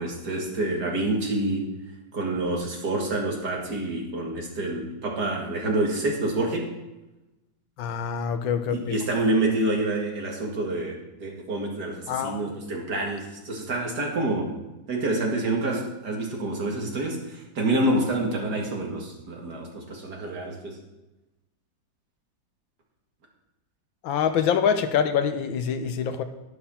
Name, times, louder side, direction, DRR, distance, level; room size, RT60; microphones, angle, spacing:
voice 1, 0.0-1.7 2.1-6.7 8.7-14.5 14.9-20.8, right 2 dB, 55° right, 0 dB, 2.5 m, -27 dB
voice 2, 7.8-8.9 12.1-12.4 24.0-26.2, left 7 dB, 85° left, 9 dB, 1.6 m, -25 dB
11.0 x 11.0 x 4.3 m, 1.0 s
omnidirectional pair, 2.1 m